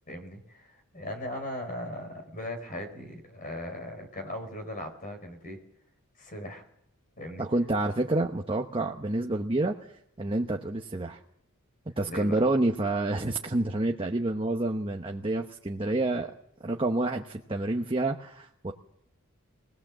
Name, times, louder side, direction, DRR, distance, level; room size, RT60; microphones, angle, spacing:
voice 1, 0.1-5.6 6.2-6.6 7.2-7.5 12.0-12.4, left 1 dB, 40° left, 5 dB, 4.6 m, -38 dB
voice 2, 7.4-9.9 10.2-11.2 12.0-16.3 16.6-18.7, right 2 dB, 25° right, 3 dB, 0.9 m, -28 dB
22.5 x 18.0 x 7.4 m, 0.74 s
head